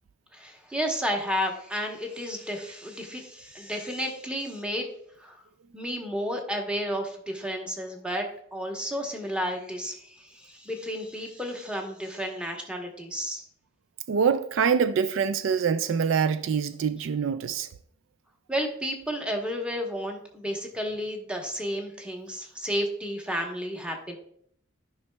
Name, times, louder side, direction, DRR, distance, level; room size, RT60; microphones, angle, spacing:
voice 1, 0.3-4.9 5.2-5.4 5.7-13.5 18.5-24.2, equal, 5° right, 0.9 m, -32 dB
voice 2, 14.1-17.7, right 6 dB, 70° right, 0.3 m, -25 dB
12.0 x 5.5 x 2.2 m
head